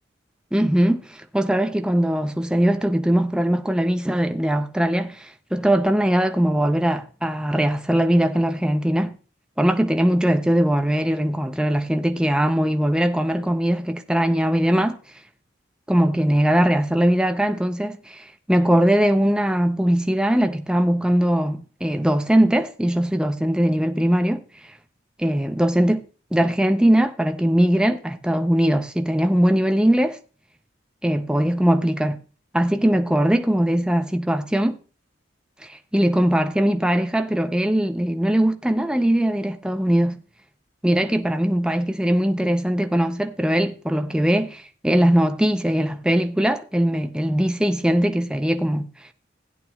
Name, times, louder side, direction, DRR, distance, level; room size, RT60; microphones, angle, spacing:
voice 1, 0.5-9.2 9.6-15.0 15.9-24.4 25.2-26.0 26.3-30.2 31.0-32.2 32.5-34.8 35.6-40.2 40.8-49.1, right 1 dB, 5° right, 0.4 m, -20 dB
16.5 x 9.0 x 2.3 m
head